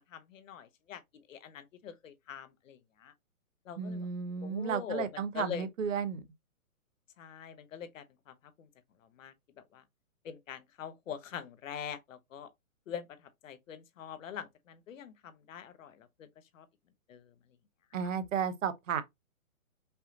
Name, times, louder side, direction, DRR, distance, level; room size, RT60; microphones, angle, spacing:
voice 1, 0.0-3.1 3.7-4.1 4.4-5.1 5.3-5.7 7.2-8.7 9.2-9.3 9.7-9.8 10.2-12.5 12.9-13.1 13.4-16.3 16.5-16.7 17.1-17.3, left 8 dB, 60° left, 1.0 m, -43 dB
voice 2, 3.8-6.2 17.9-19.0, right 7 dB, 60° right, 0.9 m, -33 dB
5.5 x 2.8 x 2.6 m
hypercardioid pair, 140°, 43 cm